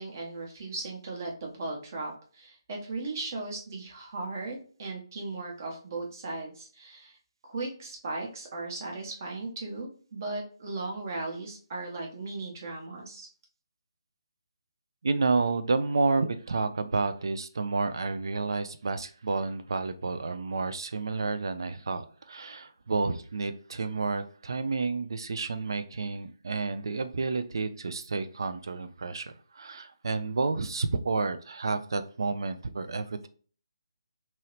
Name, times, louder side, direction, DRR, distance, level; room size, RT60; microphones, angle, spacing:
voice 1, 0.0-7.2 7.4-13.3, right 3 dB, 35° right, 0.9 m, -37 dB
voice 2, 15.0-33.3, right 3 dB, 55° right, 0.4 m, -30 dB
2.9 x 2.7 x 3.0 m
figure-of-eight pair, 145°, 3 cm